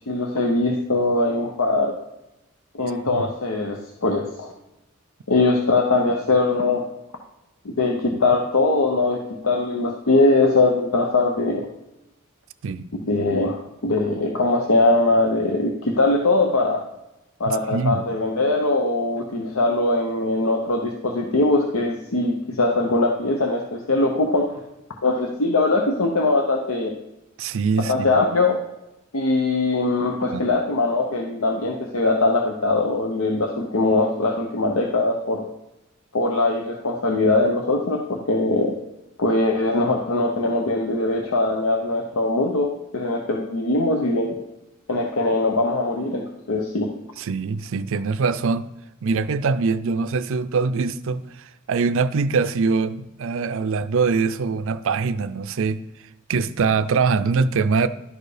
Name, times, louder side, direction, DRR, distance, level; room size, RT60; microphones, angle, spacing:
voice 1, 0.1-1.9 2.7-4.5 5.3-6.8 7.6-11.7 12.9-16.8 17.4-24.5 25.0-26.9 27.9-28.6 29.1-35.5 36.1-38.7 39.2-44.4 44.9-46.9, left 2 dB, 75° left, 0.8 m, -21 dB
voice 2, 17.4-18.0 27.4-28.2 30.3-30.5 47.2-48.7 49.0-51.2 51.7-55.8 56.3-57.9, right 4 dB, 65° right, 0.4 m, -23 dB
11.5 x 4.6 x 4.9 m
head